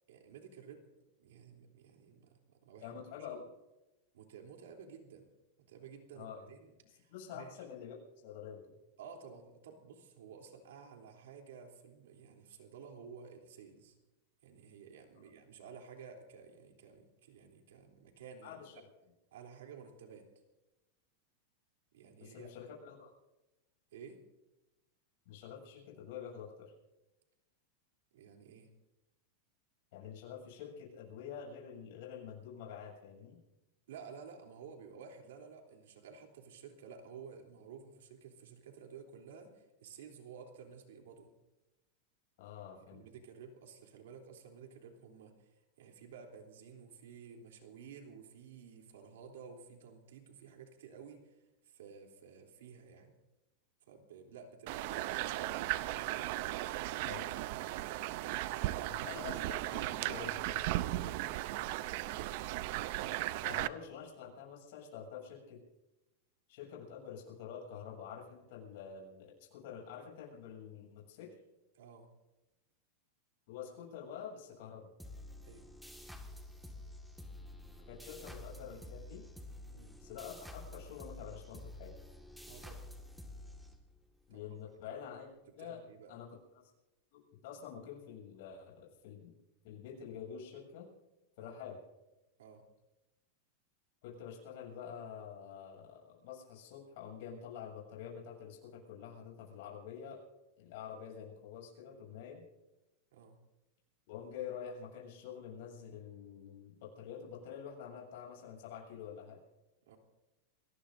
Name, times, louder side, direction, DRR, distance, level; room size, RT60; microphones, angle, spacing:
voice 1, 0.1-0.9 1.2-3.3 4.1-5.3 5.6-7.6 9.0-14.0 14.4-18.7 19.3-20.3 21.9-22.5 23.9-24.2 28.1-28.7 33.9-41.3 42.6-53.1 53.8-55.6 71.7-72.1 75.4-75.7 79.7-80.0 82.5-82.8 84.3-84.6 85.5-86.2 91.4-91.5 92.4-92.6 103.1-103.4 109.9-110.0, right 6 dB, 90° right, 2 dB, 3.2 m, -53 dB
voice 2, 2.8-3.5 6.1-6.4 7.1-8.6 18.4-18.7 22.2-23.1 25.3-26.7 29.9-33.4 42.4-43.0 57.0-57.3 58.9-60.6 63.4-65.6 66.5-71.4 73.5-74.9 77.9-79.2 80.0-81.9 84.3-85.8 86.1-86.3 87.1-89.3 89.6-90.9 91.4-91.8 94.0-100.2 100.6-102.4 104.1-109.4, left 8 dB, 60° left, -1 dB, 7.3 m, -47 dB
sound 1, 54.7-63.7, right 16 dB, 55° right, 0.6 m, -36 dB
sound 2, 75.0-84.2, left 1 dB, ahead, 1.8 m, -50 dB
29.0 x 19.0 x 2.7 m, 1.0 s
supercardioid pair, 150°, 0 cm